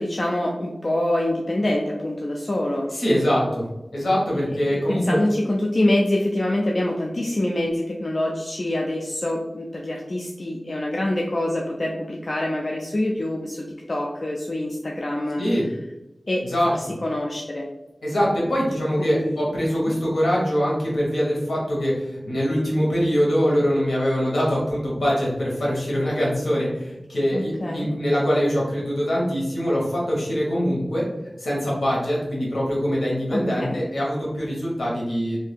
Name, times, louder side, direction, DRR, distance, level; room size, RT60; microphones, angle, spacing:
voice 1, 0.0-2.9 4.5-15.4 16.3-16.4 17.0-17.7 19.0-19.4 19.8-19.9 27.3-27.9 33.3-33.8, left 1 dB, 50° left, -1 dB, 0.4 m, -25 dB
voice 2, 2.9-3.7 3.9-5.2 15.4-15.6 16.4-16.9 18.0-31.0 31.4-35.4, equal, 80° left, -4 dB, 1.3 m, -23 dB
2.7 x 2.7 x 3.5 m, 0.96 s
wide cardioid pair, 50°, 0 cm